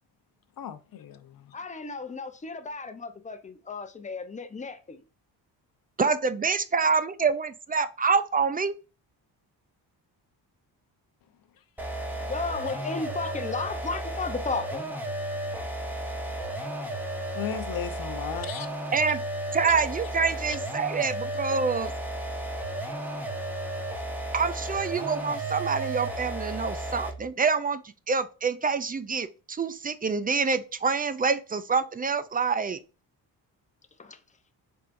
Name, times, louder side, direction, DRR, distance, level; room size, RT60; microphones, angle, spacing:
voice 1, 0.6-1.5 17.3-18.7 20.5-20.6, left 9 dB, 50° left, 0.7 m, -35 dB
voice 2, 1.5-5.0 12.2-14.8 21.5-21.7 34.0-34.2, left 4 dB, 15° left, 0.7 m, -34 dB
voice 3, 6.0-8.7 18.9-19.2 19.5-21.9 24.3-27.8 28.1-32.8, right 5 dB, 20° right, 0.3 m, -26 dB
sound 1, 11.8-27.3, right 1 dB, 5° right, 1.1 m, -33 dB
4.5 x 3.4 x 2.5 m
supercardioid pair, 60°, 45 cm